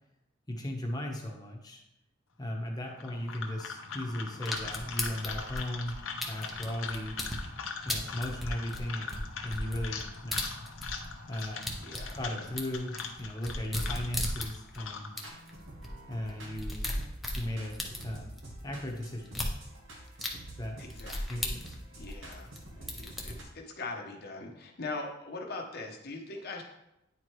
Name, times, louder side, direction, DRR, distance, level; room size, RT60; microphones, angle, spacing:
voice 1, 0.5-1.8 2.4-5.9 6.3-7.2 7.8-10.4 11.3-11.8 12.2-15.1 16.1-16.9 17.4-18.4 18.6-19.5 20.6-20.8 21.3-21.8, left 1 dB, 20° left, 0 dB, 1.0 m, -37 dB
sound 1, 2.9-15.3, left 5 dB, 90° left, 0.8 m, -41 dB
sound 2, 4.5-7.4 7.9-11.1 11.4-14.8 15.2-15.3 15.5-15.6 15.8-15.9 16.3-18.4 19.3-19.5 20.2-20.3 20.9-22.6 22.9-23.3, left 1 dB, ahead, 0.8 m, -36 dB
voice 2, 11.8-12.2 20.2-20.3 20.8-21.5 21.9-26.6, left 3 dB, 55° left, 1 dB, 0.8 m, -41 dB
sound 3, 15.2-23.4, right 1 dB, 75° right, 1.3 m, -48 dB
9.4 x 4.5 x 3.1 m, 0.88 s
head